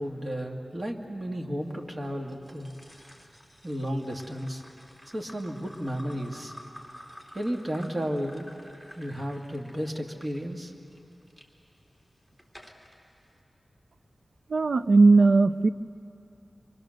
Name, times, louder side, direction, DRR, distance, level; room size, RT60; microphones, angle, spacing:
voice 1, 0.0-2.7 3.6-4.6 5.1-6.5 7.3-8.6 8.9-10.7, equal, 35° right, 1 dB, 2.1 m, -33 dB
sound 1, 2.3-11.5 12.0-13.0, equal, 15° right, 2.6 m, -51 dB
voice 2, 14.5-15.7, right 3 dB, 75° right, 13 dB, 0.5 m, -18 dB
26.0 x 24.0 x 6.6 m, 2.7 s
wide cardioid pair, 75°, 0 cm